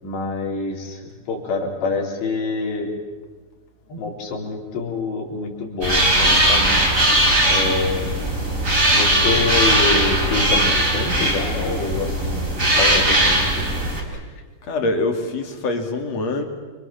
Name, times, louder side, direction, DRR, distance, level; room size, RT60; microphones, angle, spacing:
voice 1, 0.0-1.0 1.3-2.9 3.9-6.8 7.5-8.1 8.9-12.5 12.8-13.5, left 4 dB, 80° left, -1 dB, 6.2 m, -26 dB
sound 1, 5.8-14.0, right 1 dB, 20° right, 4.5 m, -19 dB
voice 2, 14.7-16.4, left 2 dB, 45° left, 4 dB, 3.3 m, -24 dB
29.0 x 25.5 x 7.3 m, 1.4 s
omnidirectional pair, 4.9 m